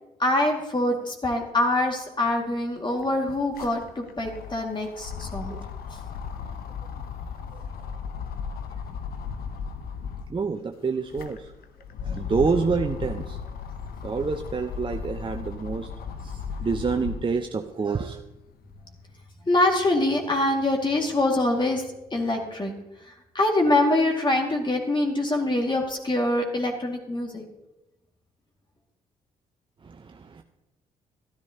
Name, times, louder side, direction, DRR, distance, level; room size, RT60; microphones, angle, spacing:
voice 1, 0.2-5.5 19.5-22.7 23.0-27.4, left 2 dB, 25° left, 1 dB, 2.1 m, -24 dB
sound 1, 2.2-2.3 2.6-10.4 10.9-17.4 17.9-19.0, left 6 dB, 60° left, 0.9 m, -36 dB
voice 2, 10.3-11.5 12.0-13.4 14.0-15.9 16.2-18.2 29.8-30.4, right 5 dB, 30° right, 5 dB, 0.8 m, -28 dB
13.5 x 13.0 x 2.9 m, 0.97 s
hypercardioid pair, 45°, 18 cm